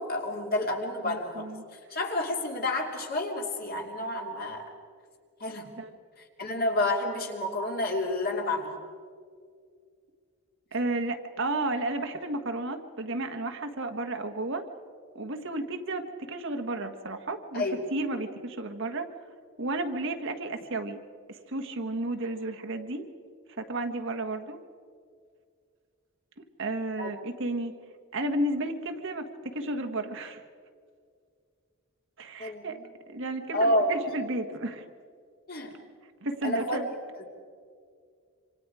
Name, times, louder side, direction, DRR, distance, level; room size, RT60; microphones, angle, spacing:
voice 1, 0.0-1.5 1.9-4.7 5.4-5.7 6.4-8.7 17.5-17.8 27.0-27.1 32.4-32.9 33.5-34.0 35.5-35.7 36.4-36.8 37.2-37.3, left 1 dB, 45° left, 1 dB, 3.0 m, -29 dB
voice 2, 1.0-1.6 5.8-5.9 10.7-14.6 15.1-17.6 17.9-19.1 19.6-21.0 21.3-23.0 23.6-24.6 26.6-27.7 28.1-30.4 32.2-32.8 33.1-34.8 36.2-36.9, right 2 dB, 55° right, 6 dB, 1.4 m, -32 dB
27.0 x 26.0 x 4.9 m, 2.1 s
head